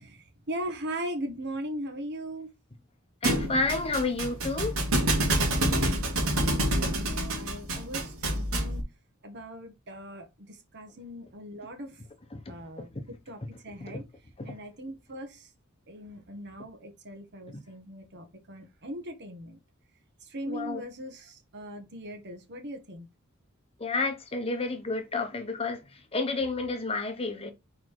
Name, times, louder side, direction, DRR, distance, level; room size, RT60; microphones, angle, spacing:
voice 1, 0.0-2.5 5.7-8.8 9.2-12.0 12.5-14.1 14.4-15.5 15.9-19.6 20.2-23.1, equal, 55° right, 1.5 m, -39 dB
voice 2, 3.2-4.8 12.3-13.0 13.9-14.0 14.4-14.6 17.5-17.6 20.5-20.8 23.8-27.5, left 3 dB, 30° left, 0.9 m, -31 dB
Thump thud, 3.2-8.8, right 1 dB, 90° right, 2.6 m, -27 dB
5.0 x 4.0 x 4.7 m
head